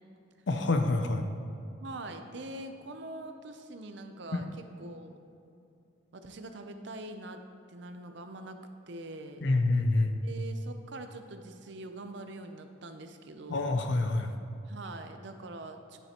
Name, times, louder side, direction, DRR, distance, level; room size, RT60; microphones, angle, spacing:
voice 1, 0.5-1.2 4.3-4.4 9.4-10.2 13.5-14.3, left 2 dB, 60° left, 7 dB, 0.5 m, -27 dB
voice 2, 1.6-5.1 6.1-7.4 7.7-8.6 8.9-9.5 10.2-13.8 14.7-16.0, right 2 dB, 60° right, 7 dB, 0.6 m, -44 dB
9.2 x 7.6 x 2.9 m, 2.5 s
head